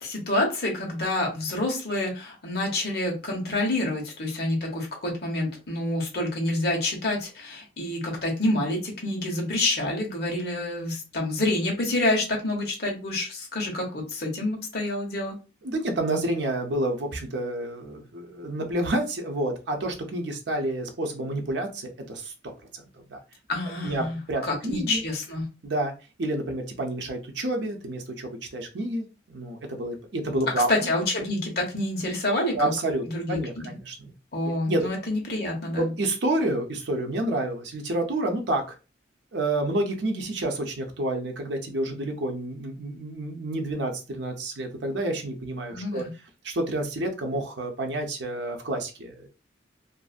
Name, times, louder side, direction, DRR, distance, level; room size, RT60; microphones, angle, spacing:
voice 1, 0.0-15.4 23.5-24.2 24.4-25.5 30.7-32.7 33.1-33.7 34.3-35.9 45.7-46.1, left 1 dB, 55° left, 0 dB, 1.0 m, -28 dB
voice 2, 15.6-22.5 23.1-23.2 23.8-25.0 25.6-25.9 26.2-30.7 32.5-34.0 34.7-34.9 35.8-38.8 39.3-46.0 46.4-49.3, right 1 dB, 70° right, 3 dB, 0.6 m, -29 dB
2.5 x 2.5 x 2.4 m, 0.31 s
head